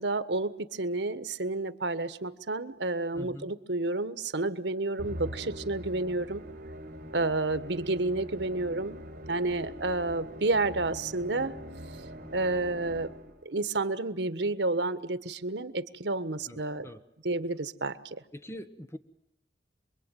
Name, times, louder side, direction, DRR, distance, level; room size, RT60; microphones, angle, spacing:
voice 1, 0.0-6.4 7.1-9.0 9.3-11.5 12.3-13.1 13.4-16.9 17.2-18.2, right 2 dB, 85° right, 13 dB, 1.5 m, -30 dB
voice 2, 3.1-3.5 16.5-17.0 18.3-19.0, left 1 dB, 15° left, 9 dB, 1.2 m, -43 dB
Musical instrument, 5.0-13.5, equal, 50° right, 3.8 m, -43 dB
28.0 x 22.5 x 9.3 m, 0.79 s
head